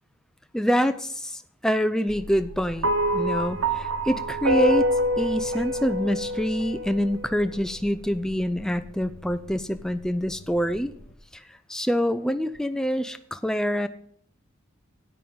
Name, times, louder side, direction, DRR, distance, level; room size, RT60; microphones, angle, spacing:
voice 1, 0.5-4.9 5.2-10.9 11.3-11.4 11.7-13.9, equal, 5° left, 9 dB, 0.4 m, -26 dB
sound 1, 2.1-11.2, left 1 dB, 40° left, 0.9 m, -44 dB
sound 2, 2.8-7.3, equal, 80° right, 0.8 m, -26 dB
13.0 x 9.3 x 3.9 m, 0.64 s
head